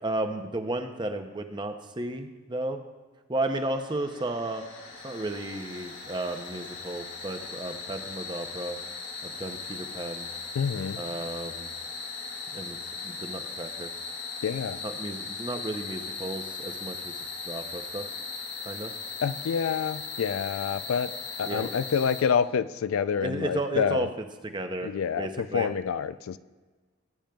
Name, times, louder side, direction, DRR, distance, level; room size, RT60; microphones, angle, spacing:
voice 1, 0.0-2.8 3.3-4.6 5.0-8.8 9.2-10.3 11.0-11.7 12.5-12.8 13.0-13.9 14.8-17.1 17.5-18.0 18.6-18.9 21.5-21.7 23.2-24.1 24.4-25.7, right 2 dB, 20° right, 7 dB, 0.6 m, -33 dB
sound 1, 3.5-22.2, left 4 dB, 65° left, 3.1 m, -38 dB
voice 2, 10.5-11.0 14.4-14.8 19.2-21.1 21.4-24.1 24.8-26.4, left 7 dB, 80° left, 15 dB, 0.3 m, -27 dB
16.5 x 8.8 x 2.3 m, 1.4 s
head